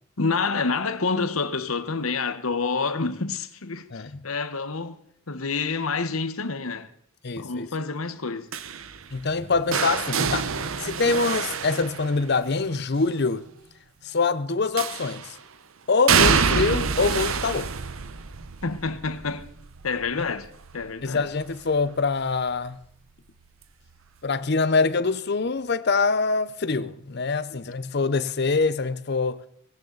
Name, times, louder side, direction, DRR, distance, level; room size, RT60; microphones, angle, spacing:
voice 1, 0.2-5.0 5.3-6.9 7.4-8.5 18.6-19.5 19.8-20.5 20.7-21.2 27.5-27.6, left 4 dB, 90° left, 1.2 m, -28 dB
voice 2, 7.2-7.7 9.1-10.5 10.8-13.5 14.0-15.4 15.9-17.7 20.2-20.3 21.0-22.8 24.2-29.4, left 4 dB, 50° left, 0.7 m, -24 dB
sound 1, 8.5-12.6 14.8-15.4 16.1-21.9 22.2-22.6 23.9-24.0, right 6 dB, 80° right, 0.9 m, -27 dB
18.5 x 17.0 x 4.0 m
head